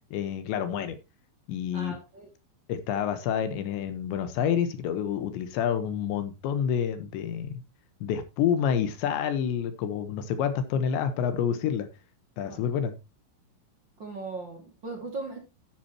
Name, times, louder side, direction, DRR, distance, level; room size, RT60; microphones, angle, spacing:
voice 1, 0.1-1.0 1.5-1.9 2.7-7.6 8.0-11.9 12.4-12.9, left 8 dB, 75° left, 3.1 m, -28 dB
voice 2, 1.7-2.3 12.4-12.6 14.0-15.4, right 3 dB, 50° right, 1.4 m, -38 dB
11.0 x 10.5 x 2.9 m
omnidirectional pair, 5.9 m